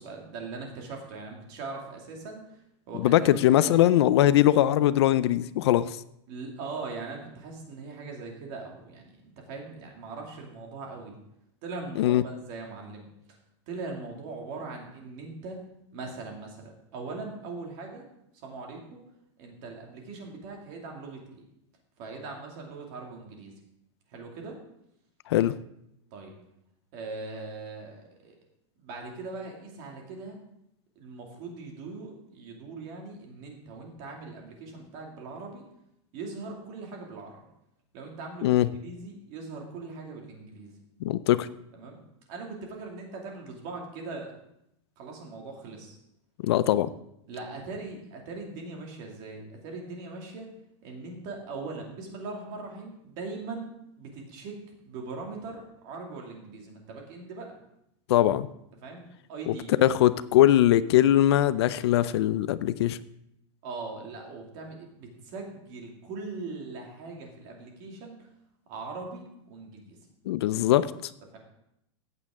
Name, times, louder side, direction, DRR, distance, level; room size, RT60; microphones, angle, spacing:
voice 1, 0.0-3.9 6.3-11.2 11.6-13.1 13.7-15.6 15.9-18.0 18.4-19.0 19.4-21.4 22.0-23.5 24.1-24.6 26.1-26.3 26.9-28.3 28.8-30.4 31.0-35.6 36.1-37.4 37.9-40.7 41.7-42.0 42.3-44.3 45.0-46.0 47.3-50.5 50.8-53.7 54.0-54.6 54.8-57.6 58.8-59.8 60.4-60.6 63.6-68.2 68.7-70.0 71.3-71.4, right 3 dB, 35° right, 1 dB, 2.3 m, -40 dB
voice 2, 2.9-6.0 12.0-12.2 25.3-25.6 38.4-38.7 41.0-41.5 46.4-46.9 58.1-58.5 59.5-63.0 70.3-71.1, left 13 dB, 60° left, 16 dB, 0.4 m, -21 dB
14.5 x 8.8 x 3.6 m, 0.79 s
supercardioid pair, 175°, 15 cm